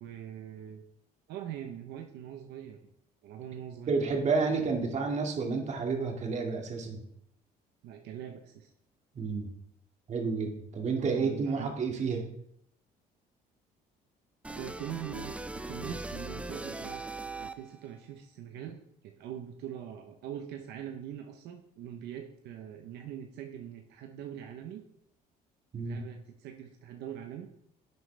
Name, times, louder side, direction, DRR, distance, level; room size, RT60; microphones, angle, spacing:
voice 1, 0.0-0.8 1.3-2.8 3.2-4.0 7.8-8.7 11.0-11.7 14.6-15.4 15.7-17.0 17.4-24.8 25.8-27.5, right 10 dB, 80° right, 4 dB, 1.0 m, -42 dB
voice 2, 3.9-7.0 9.1-9.5 10.1-12.2 25.7-26.0, right 4 dB, 45° right, 2 dB, 2.2 m, -30 dB
sound 1, 14.4-17.9, right 2 dB, 5° right, 0.4 m, -40 dB
11.0 x 7.7 x 3.4 m, 0.75 s
cardioid pair, 110°, 17 cm